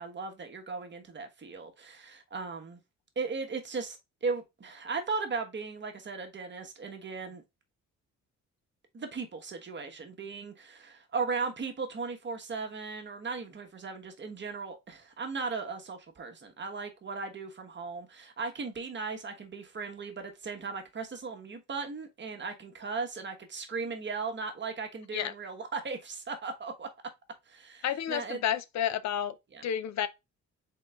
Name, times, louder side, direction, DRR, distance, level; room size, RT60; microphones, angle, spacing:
voice 1, 0.0-2.8 3.1-7.4 8.9-26.9 27.5-28.4 29.5-29.6, right 4 dB, 35° right, 1.2 m, -37 dB
voice 2, 27.8-29.4 29.6-30.1, left 9 dB, 65° left, 0.5 m, -30 dB
3.8 x 3.7 x 3.4 m
cardioid pair, 90°, 30 cm